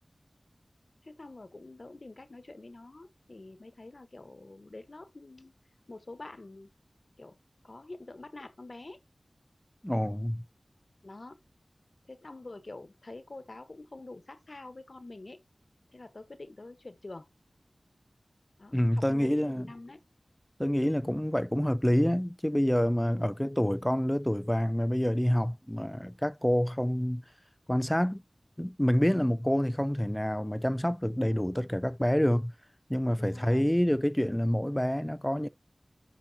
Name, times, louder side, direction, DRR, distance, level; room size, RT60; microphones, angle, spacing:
voice 1, 1.0-5.5 5.9-6.7 7.2-7.4 7.6-9.0 11.0-11.4 12.1-15.4 15.9-17.3 18.6-20.0 23.1-23.4 33.2-33.7, left 2 dB, 55° left, 1.2 m, -46 dB
voice 2, 9.8-10.4 18.7-19.7 20.6-27.2 27.7-28.2 28.6-32.5 32.9-35.5, equal, 10° left, 0.4 m, -27 dB
10.5 x 5.1 x 2.8 m
wide cardioid pair, 50°, 0 cm